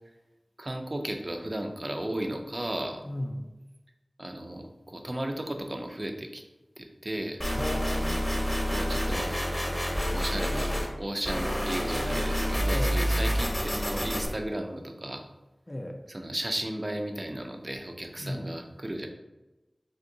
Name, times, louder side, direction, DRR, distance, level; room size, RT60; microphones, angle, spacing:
voice 1, 0.6-3.0 4.2-6.4 6.8-7.4 8.7-9.3 10.1-15.2 16.1-19.1, right 1 dB, 40° right, 4 dB, 0.4 m, -34 dB
voice 2, 3.0-3.5 7.5-8.3 12.6-13.0 15.7-16.0 18.2-18.5, left 1 dB, 30° left, 4 dB, 0.4 m, -35 dB
sound 1, 7.4-10.9 11.2-14.2, equal, 10° left, 0.7 m, -28 dB
3.6 x 2.8 x 2.7 m, 1.1 s
wide cardioid pair, 55°, 0 cm